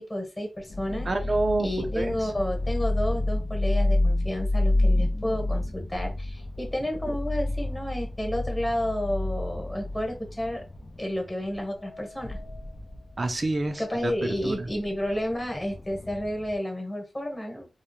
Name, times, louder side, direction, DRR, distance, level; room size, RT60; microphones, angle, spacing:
voice 1, 0.0-1.1 1.6-10.6 11.0-12.4 13.8-17.7, left 1 dB, 25° left, 1.1 m, -31 dB
sound 1, 0.6-16.5, left 1 dB, 60° left, 0.5 m, -29 dB
voice 2, 1.1-2.3 13.2-14.1 14.4-14.7, right 2 dB, 50° right, 0.4 m, -28 dB
2.3 x 2.0 x 2.9 m
cardioid pair, 45°, 0 cm